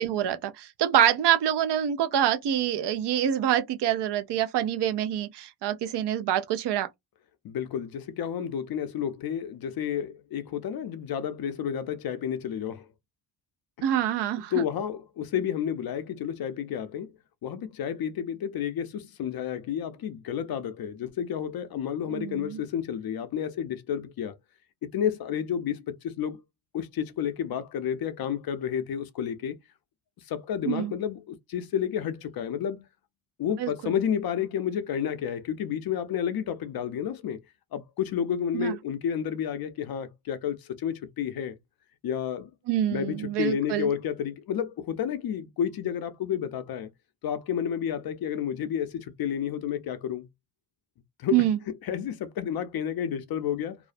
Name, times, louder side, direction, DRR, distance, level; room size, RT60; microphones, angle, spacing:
voice 1, 0.0-6.9 13.8-14.5 22.1-22.6 30.7-30.9 33.6-33.9 38.5-38.7 42.7-43.9 51.3-51.6, right 11 dB, 60° right, 0.6 m, -26 dB
voice 2, 7.4-12.9 14.5-17.1 17.4-24.4 24.8-26.4 26.7-29.6 30.2-32.8 33.4-37.4 37.7-41.6 42.0-42.5 42.9-46.9 47.2-50.3 51.2-51.5 51.8-53.8, left 9 dB, 50° left, 0.5 m, -31 dB
2.4 x 2.0 x 2.5 m
cardioid pair, 105°, 47 cm